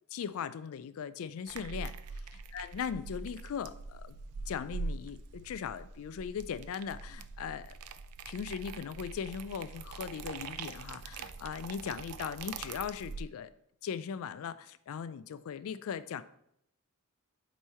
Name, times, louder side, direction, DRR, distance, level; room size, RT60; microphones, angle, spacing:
voice 1, 0.1-4.1 4.5-7.7 8.3-13.5 13.8-16.2, left 7 dB, 65° left, 14 dB, 0.3 m, -39 dB
sound 1, 1.5-13.2, right 4 dB, 80° right, 0.4 m, -43 dB
8.1 x 3.1 x 4.3 m, 0.73 s
head